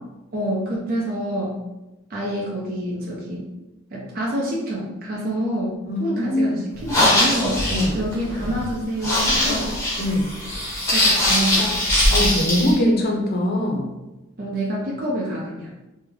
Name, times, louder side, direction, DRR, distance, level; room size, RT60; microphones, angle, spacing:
voice 1, 0.3-1.6 2.1-3.5 3.9-7.6 7.9-9.8 10.9-11.7 14.4-15.7, right 1 dB, 45° right, -4 dB, 0.6 m, -27 dB
voice 2, 5.9-6.6 7.7-8.0 10.0-10.3 12.1-13.9, left 1 dB, 45° left, 1 dB, 0.6 m, -22 dB
sound 1, 6.8-12.7, left 1 dB, 15° left, 0.8 m, -21 dB
3.2 x 2.1 x 3.5 m, 1.0 s
head